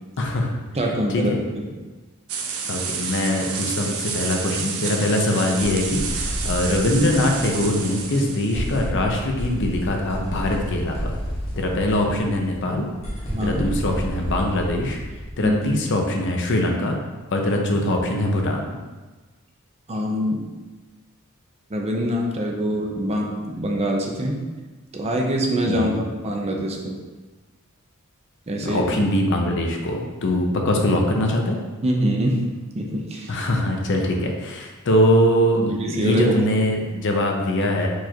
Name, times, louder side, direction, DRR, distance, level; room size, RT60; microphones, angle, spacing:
voice 1, 0.2-0.6 1.1-1.4 2.7-11.1 11.6-12.9 13.4-15.0 15.4-17.0 17.3-18.7 25.7-26.0 28.6-31.6 33.3-37.9, left 1 dB, 55° left, 2 dB, 0.6 m, -22 dB
voice 2, 0.7-1.7 13.3-13.6 15.4-15.6 19.9-20.5 21.7-24.4 24.9-27.0 28.5-28.8 31.8-32.5 32.7-33.4 35.7-36.3, equal, 30° right, 0 dB, 0.6 m, -24 dB
sound 1, 2.3-8.9, right 6 dB, 75° right, 0.5 m, -30 dB
sound 2, 5.6-8.2 8.5-15.7, equal, 30° left, 1.1 m, -31 dB
4.7 x 2.5 x 4.3 m, 1.2 s
head